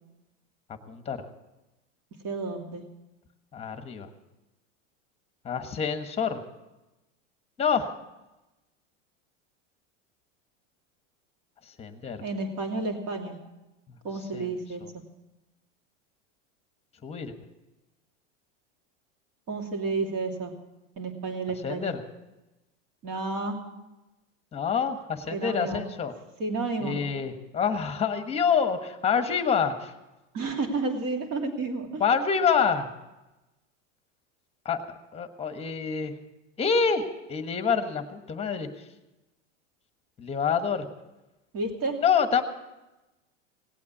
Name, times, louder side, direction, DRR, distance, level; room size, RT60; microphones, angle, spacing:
voice 1, 0.9-1.3 3.5-4.1 5.4-6.4 7.6-7.9 11.6-12.2 13.9-14.5 14.8-14.9 17.0-17.3 21.6-22.0 24.5-26.1 26.8-29.9 32.0-32.9 34.6-36.1 36.6-38.9 40.2-40.9 42.0-42.4, left 6 dB, 15° left, 8 dB, 1.3 m, -27 dB
voice 2, 2.2-2.8 12.2-13.3 14.0-14.8 19.5-20.5 21.0-21.9 23.0-23.6 25.3-25.8 26.4-26.9 30.3-32.0 41.5-42.0, right 3 dB, 45° right, 3 dB, 2.8 m, -31 dB
18.0 x 8.5 x 8.5 m, 1.0 s
supercardioid pair, 135°, 37 cm